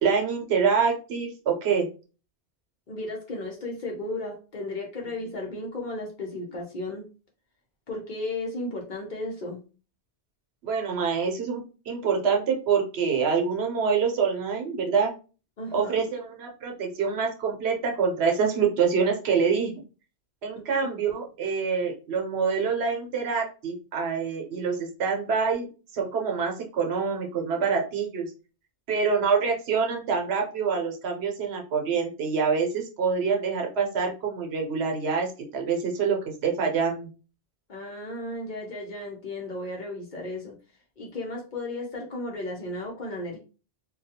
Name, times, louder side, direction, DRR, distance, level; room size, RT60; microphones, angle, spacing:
voice 1, 0.0-1.9 10.6-15.1 15.7-19.7 20.4-25.7 25.9-28.3 28.9-35.3 35.5-36.2 36.4-37.1, right 5 dB, 75° right, 2 dB, 0.9 m, -26 dB
voice 2, 2.9-7.1 7.9-9.6 15.6-16.1 20.8-20.9 37.7-40.6 41.0-43.4, left 2 dB, 50° left, 0 dB, 0.8 m, -34 dB
2.3 x 2.2 x 2.8 m, 0.34 s
omnidirectional pair, 1.1 m